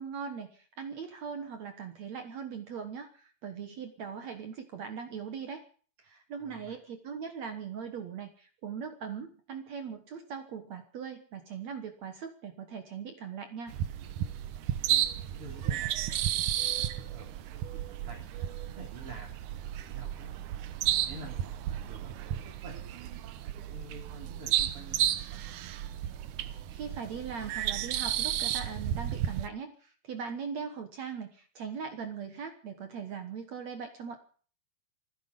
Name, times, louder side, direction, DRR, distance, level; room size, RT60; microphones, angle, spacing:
voice 1, 0.0-5.7 6.0-13.7 26.7-34.2, right 6 dB, 60° right, 7 dB, 1.9 m, -40 dB
voice 2, 6.4-6.8 14.7-15.9 16.7-20.3 20.8-25.4, right 2 dB, 35° right, -2 dB, 3.7 m, -50 dB
sound 1, 13.7-29.5, right 11 dB, 85° right, 1.7 m, -33 dB
27.0 x 9.8 x 5.3 m, 0.43 s
omnidirectional pair, 4.8 m